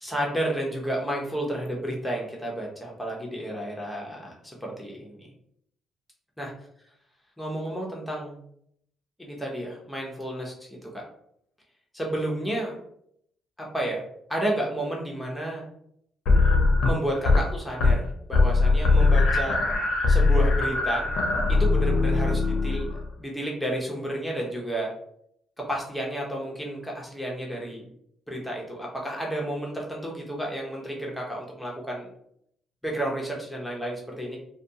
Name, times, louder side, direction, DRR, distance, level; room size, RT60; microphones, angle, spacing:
voice 1, 0.0-5.3 6.4-6.5 7.4-8.4 9.2-11.0 11.9-12.8 13.6-14.0 14.3-15.7 16.8-18.0 18.3-19.6 20.1-21.0 21.5-24.9 25.7-27.9 28.3-32.1 32.8-34.4, right 1 dB, 5° left, -2 dB, 0.8 m, -31 dB
sound 1, 16.3-17.5 17.7-18.1 18.3-23.1, left 3 dB, 75° left, 0.5 m, -21 dB
2.4 x 2.3 x 2.7 m, 0.71 s
cardioid pair, 90°, 0 cm